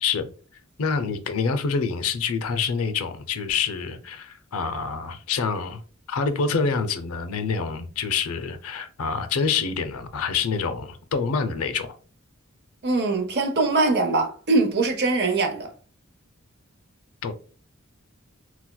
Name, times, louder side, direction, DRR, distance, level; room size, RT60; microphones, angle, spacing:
voice 1, 0.8-5.8 6.1-11.9 17.2-17.3, left 5 dB, 85° left, 0.5 m, -26 dB
voice 2, 12.8-15.7, right 3 dB, 50° right, 0.7 m, -22 dB
4.0 x 2.2 x 2.2 m
head